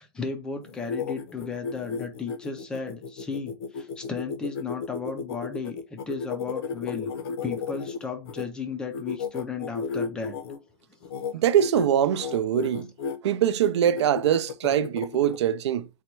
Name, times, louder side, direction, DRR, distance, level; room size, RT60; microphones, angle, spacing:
voice 1, 0.0-7.1 7.4-10.4, left 5 dB, 5° left, 0.3 m, -34 dB
sound 1, 0.6-8.4 8.9-10.6 11.0-11.3 11.6-11.9 12.2-13.2 13.6-15.4, left 5 dB, 60° left, 0.7 m, -33 dB
voice 2, 11.3-12.9 13.2-15.9, right 10 dB, 75° right, 0.4 m, -23 dB
4.2 x 2.2 x 4.4 m
supercardioid pair, 175°, 14 cm